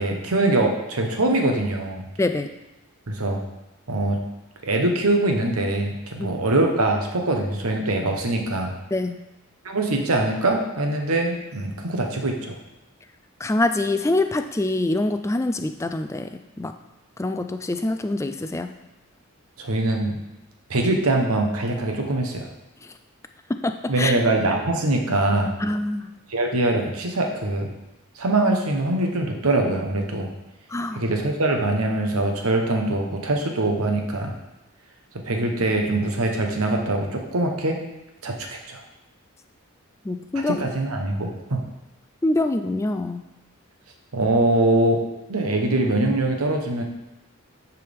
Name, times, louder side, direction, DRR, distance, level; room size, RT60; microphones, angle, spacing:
voice 1, 0.0-2.0 3.1-3.4 3.9-4.2 4.6-8.7 9.6-12.5 19.6-20.2 20.7-22.5 23.9-25.6 26.3-27.7 28.2-30.3 30.9-34.3 35.2-37.8 38.2-38.8 40.5-41.6 44.1-45.0 45.3-46.8, right 2 dB, 85° right, 2 dB, 1.1 m, -23 dB
voice 2, 13.4-16.3 16.6-16.7 17.2-18.7 23.5-24.1 25.6-26.1 30.7-31.0 40.1-40.6 42.2-43.2, left 2 dB, 15° left, 8 dB, 0.3 m, -25 dB
9.8 x 4.7 x 3.5 m, 0.96 s
head